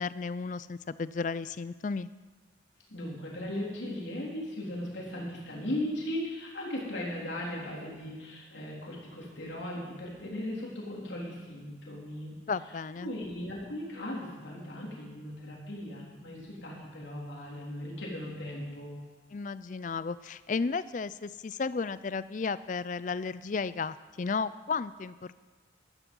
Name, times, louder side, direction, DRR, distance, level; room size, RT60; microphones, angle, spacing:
voice 1, 0.0-2.1 12.5-13.1 19.3-25.4, left 4 dB, 40° left, 16 dB, 0.4 m, -33 dB
voice 2, 2.9-12.3 13.0-18.9, left 1 dB, 75° left, -3 dB, 3.5 m, -37 dB
13.0 x 12.5 x 5.4 m, 1.3 s
head